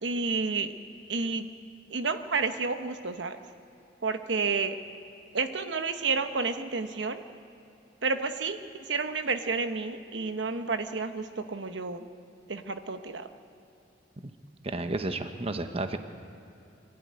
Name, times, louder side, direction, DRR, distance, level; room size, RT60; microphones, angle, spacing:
voice 1, 0.0-0.7 1.1-1.5 1.9-3.4 4.0-4.8 5.3-7.2 8.0-12.1 12.5-13.3, right 4 dB, 75° right, 8 dB, 1.0 m, -30 dB
voice 2, 14.6-16.0, right 2 dB, 35° right, 8 dB, 1.0 m, -32 dB
24.0 x 12.5 x 9.7 m, 2.8 s
head